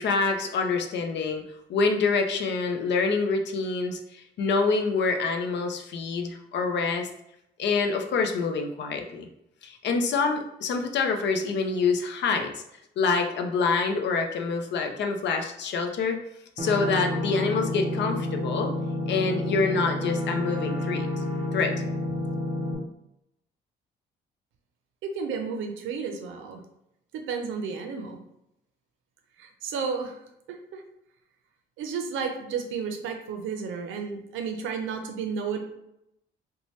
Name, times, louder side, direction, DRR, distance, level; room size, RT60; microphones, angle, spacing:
voice 1, 0.0-1.4 1.7-7.1 7.6-9.3 9.6-12.6 13.0-16.2 16.6-18.7 19.1-21.2 21.5-21.7, left 4 dB, 65° left, 5 dB, 0.5 m, -26 dB
sound 1, 16.6-22.7, left 1 dB, 30° right, 0.6 m, -29 dB
voice 2, 25.0-26.6 27.1-28.2 29.4-30.2 30.5-30.8 31.8-35.6, right 5 dB, 85° right, 5 dB, 0.5 m, -32 dB
2.7 x 2.1 x 3.1 m, 0.81 s
cardioid pair, 90°, 20 cm